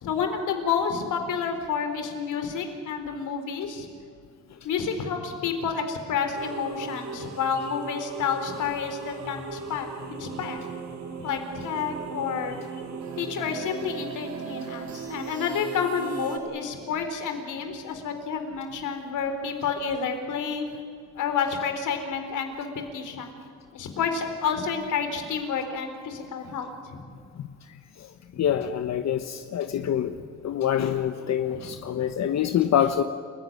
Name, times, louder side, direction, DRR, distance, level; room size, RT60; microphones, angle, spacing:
voice 1, 0.0-3.9 4.6-10.6 11.2-12.6 13.2-20.6 21.1-23.3 23.7-27.1 28.3-28.5 29.7-30.2 31.5-32.0, left 6 dB, 80° left, 6 dB, 3.9 m, -30 dB
sound 1, 6.3-16.4, right 5 dB, 65° right, 3.7 m, -38 dB
voice 2, 28.4-30.1 30.4-33.0, left 10 dB, 60° left, 8 dB, 1.2 m, -25 dB
29.5 x 16.0 x 9.9 m, 2.1 s
cardioid pair, 90°, 30 cm